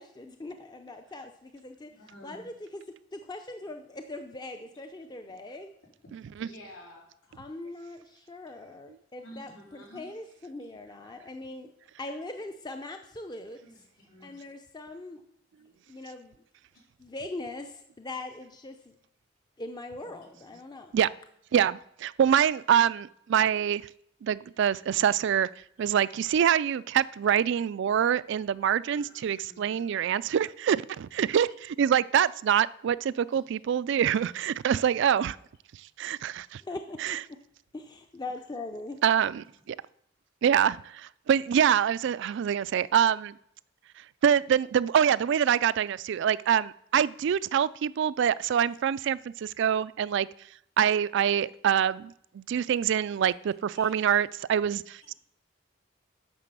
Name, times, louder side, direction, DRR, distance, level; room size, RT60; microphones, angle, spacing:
voice 1, 0.0-2.8 3.1-5.7 7.3-11.7 12.0-13.6 14.2-15.2 15.9-16.4 17.0-18.9 19.6-21.0 36.6-37.4 37.7-39.0, left 2 dB, 20° left, 0.5 m, -41 dB
voice 2, 2.0-2.5 6.4-7.2 9.2-10.1 13.6-14.4 15.6-15.7 16.7-16.8 20.0-20.6 25.8-25.9 28.7-29.9 53.7-53.9, left 1 dB, 85° left, 4.0 m, -51 dB
voice 3, 21.5-23.8 24.2-25.5 25.8-35.4 36.0-36.6 37.0-37.2 39.0-39.8 40.4-43.3 44.2-50.3 50.8-55.1, right 8 dB, 65° right, 0.3 m, -25 dB
9.7 x 6.0 x 6.8 m
head